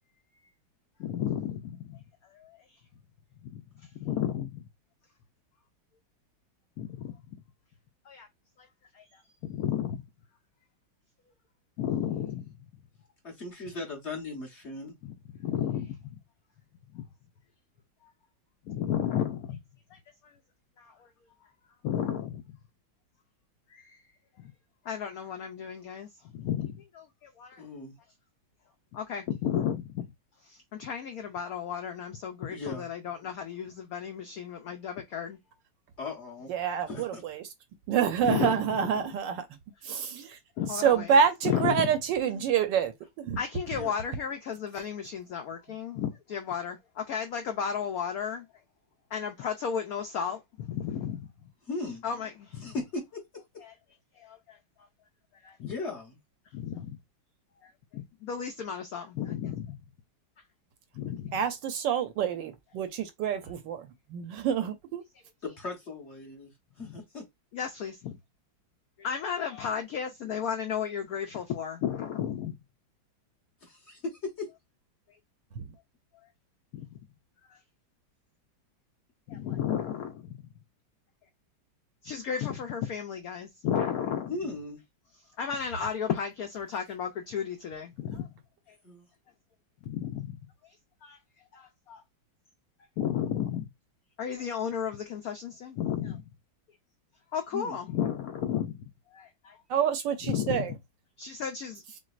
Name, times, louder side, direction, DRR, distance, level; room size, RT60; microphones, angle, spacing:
voice 1, 1.0-2.6 3.4-4.6 6.8-7.4 8.1-8.3 8.6-8.7 8.9-10.0 11.8-12.5 15.0-16.2 16.9-17.1 18.0-18.1 18.6-19.6 19.9-20.4 20.8-21.1 21.4-21.5 21.8-22.5 23.7-24.0 24.4-24.5 24.8-27.7 28.9-30.1 30.4-35.4 38.2-39.1 39.8-40.0 40.6-41.9 43.4-48.5 49.1-51.3 52.0-52.7 53.6-53.7 54.1-54.6 55.3-55.7 56.5-57.0 57.6-59.8 60.9-61.4 66.8-66.9 67.5-68.2 69.0-72.6 76.7-76.9 77.5-77.6 79.3-80.5 82.0-84.4 85.4-88.3 88.7-88.8 89.8-90.4 90.6-90.7 91.0-91.2 91.5-92.0 93.0-93.7 94.2-96.2 97.3-99.6 100.2-100.7 101.2-101.8, left 8 dB, 80° left, 0.8 m, -34 dB
voice 2, 13.2-15.0 27.6-27.9 32.5-32.9 36.0-36.5 36.9-37.2 42.3-42.4 43.7-43.9 51.7-52.0 52.6-53.2 55.6-56.2 65.4-66.5 66.8-67.2 73.6-74.5 84.3-84.8 88.8-89.1 97.5-97.8, left 3 dB, 40° left, 1.3 m, -37 dB
voice 3, 36.5-37.4 37.9-39.5 39.8-40.4 40.8-43.4 61.3-65.0 75.6-75.7 99.7-100.7, right 8 dB, 75° right, 1.2 m, -27 dB
6.0 x 2.1 x 2.4 m
omnidirectional pair, 2.2 m